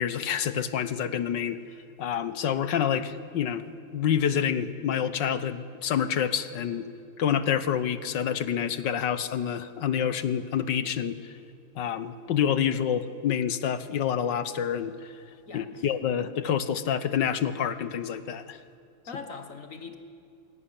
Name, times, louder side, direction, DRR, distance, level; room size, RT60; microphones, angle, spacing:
voice 1, 0.0-1.6 2.0-3.6 3.9-6.9 7.2-11.3 11.7-15.1 15.5-18.6, left 8 dB, 60° left, 13 dB, 1.5 m, -27 dB
voice 2, 15.5-15.9 19.1-19.9, left 4 dB, 40° left, 7 dB, 1.7 m, -41 dB
22.0 x 17.0 x 9.9 m, 2.5 s
omnidirectional pair, 2.3 m